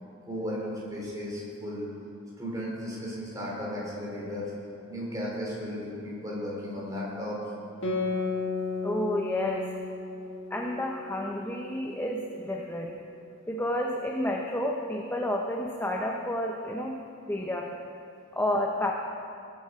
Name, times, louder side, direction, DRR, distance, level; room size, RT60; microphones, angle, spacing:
voice 1, 0.0-1.9 2.4-4.5 4.9-7.4, equal, 15° right, -5 dB, 3.4 m, -35 dB
Guitar, 7.8-12.8, left 3 dB, 60° left, 1.8 m, -34 dB
voice 2, 8.8-9.7 10.5-13.0 13.5-17.0 17.3-17.8 18.3-18.9, left 1 dB, 10° left, 0 dB, 0.7 m, -30 dB
19.0 x 7.8 x 5.0 m, 2.5 s
head